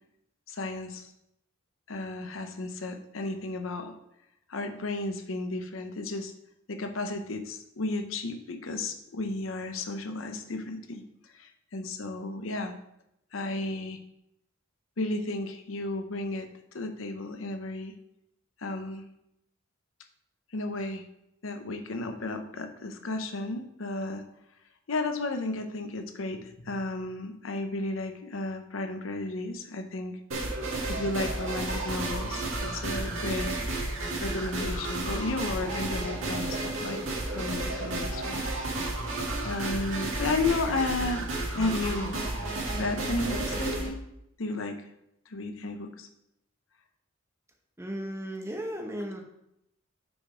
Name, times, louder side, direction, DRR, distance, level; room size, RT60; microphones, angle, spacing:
voice 1, 0.5-1.1 1.9-3.9 4.5-6.3 6.7-11.0 11.3-12.7 13.3-14.0 15.0-16.5 16.7-17.9 18.6-19.0 20.5-21.0 21.4-24.2 24.9-30.2 30.9-33.5 34.2-37.0 37.3-38.5 39.4-41.3 41.5-42.2 42.8-44.0 44.4-44.8 45.3-46.1, left 2 dB, 85° left, 6 dB, 0.8 m, -33 dB
sound 1, 30.3-43.9, right 2 dB, 80° right, 2.0 m, -32 dB
voice 2, 47.8-49.2, equal, 15° right, 2 dB, 1.0 m, -35 dB
6.2 x 5.0 x 4.9 m, 0.81 s
head